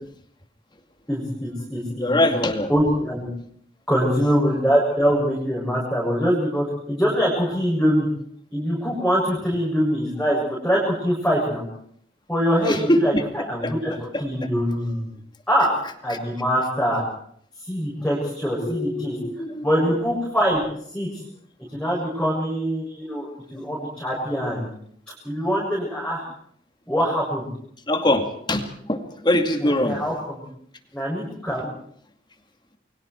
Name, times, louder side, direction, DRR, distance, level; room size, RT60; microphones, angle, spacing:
voice 1, 1.1-2.3 2.7-3.3 3.9-8.1 8.5-11.6 12.3-15.0 15.5-15.7 16.0-17.0 17.6-19.2 19.6-20.6 20.9-21.1 21.7-24.7 25.2-26.2 26.9-27.5 29.6-30.4 30.9-31.7, equal, 5° left, -5 dB, 7.1 m, -23 dB
voice 2, 2.0-2.7 12.6-13.2 13.6-13.7 14.1-14.2 16.1-16.2 18.6-19.7 27.9-30.0, left 1 dB, 25° left, 6 dB, 2.3 m, -23 dB
29.5 x 23.0 x 4.7 m, 0.63 s
head